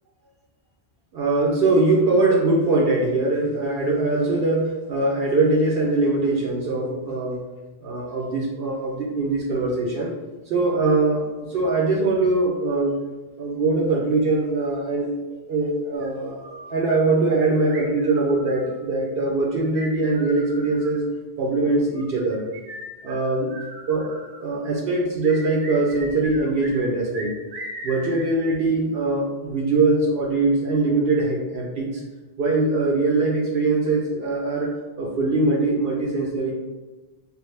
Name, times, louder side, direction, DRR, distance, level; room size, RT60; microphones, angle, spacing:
voice 1, 1.1-7.4 7.8-10.1 10.5-13.0 13.4-15.1 15.5-16.4 16.7-21.0 21.4-22.4 23.0-23.5 23.9-27.3 27.8-32.0 32.4-34.7 35.0-36.5, right 2 dB, 65° right, -2 dB, 0.8 m, -22 dB
sound 1, 16.0-16.7 17.7-18.8 19.7-21.0 21.9-24.4 25.2-26.9 27.1-28.3, right 1 dB, 85° right, 1.0 m, -39 dB
3.4 x 2.3 x 3.1 m, 1.2 s
omnidirectional pair, 1.1 m